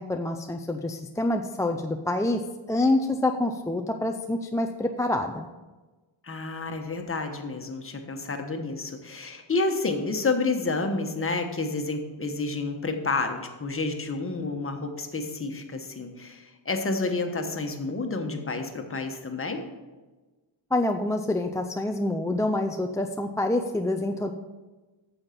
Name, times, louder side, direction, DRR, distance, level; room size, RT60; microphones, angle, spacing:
voice 1, 0.0-2.4 2.7-5.5 20.7-24.3, left 2 dB, 5° left, 3 dB, 0.3 m, -27 dB
voice 2, 6.2-19.7, left 3 dB, 25° left, 4 dB, 1.2 m, -30 dB
8.9 x 7.1 x 5.8 m, 1.2 s
cardioid pair, 125°, 50 cm